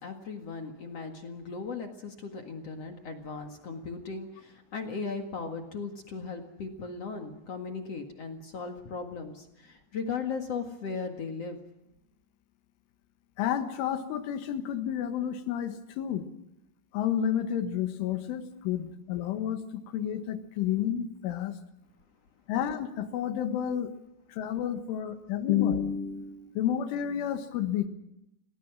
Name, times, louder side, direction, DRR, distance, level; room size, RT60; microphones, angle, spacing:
voice 1, 0.0-11.6, left 5 dB, 55° left, 4 dB, 1.9 m, -37 dB
voice 2, 13.4-16.3 16.9-21.5 22.5-23.9 24.3-27.9, left 9 dB, 80° left, 8 dB, 4.0 m, -30 dB
29.0 x 18.5 x 6.2 m, 0.86 s
omnidirectional pair, 5.5 m